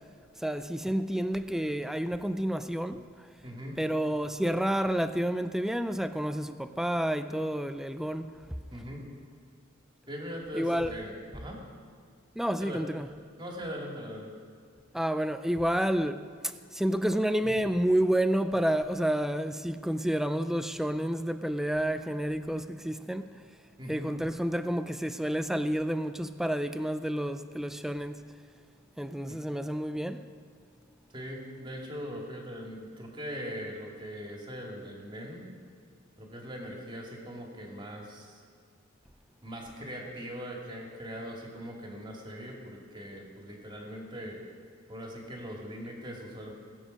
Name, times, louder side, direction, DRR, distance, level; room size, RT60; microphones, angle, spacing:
voice 1, 0.4-3.0 3.8-8.3 10.5-10.9 12.4-13.1 14.9-23.4 23.9-28.2 29.0-30.3, right 1 dB, ahead, 0.4 m, -29 dB
voice 2, 3.4-3.8 8.7-9.0 10.1-11.6 12.6-12.8 13.4-14.3 23.8-24.1 29.3-29.4 31.1-35.5 36.2-38.4 39.4-44.4 44.9-46.5, equal, 25° right, 2.3 m, -40 dB
20.5 x 7.6 x 5.3 m
head